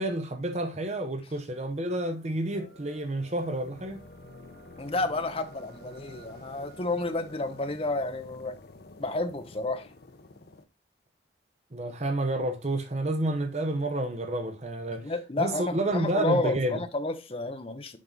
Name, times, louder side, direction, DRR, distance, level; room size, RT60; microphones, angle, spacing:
voice 1, 0.0-4.0 11.7-15.1 15.4-16.8, right 1 dB, 35° right, 0.9 m, -29 dB
sound 1, 1.4-10.6, left 2 dB, 60° left, 0.8 m, -50 dB
sound 2, 2.4-7.7, right 2 dB, 65° right, 2.3 m, -54 dB
voice 2, 4.8-8.6 9.0-9.9 14.9-18.0, left 2 dB, 30° left, 0.8 m, -31 dB
7.5 x 5.4 x 3.9 m
head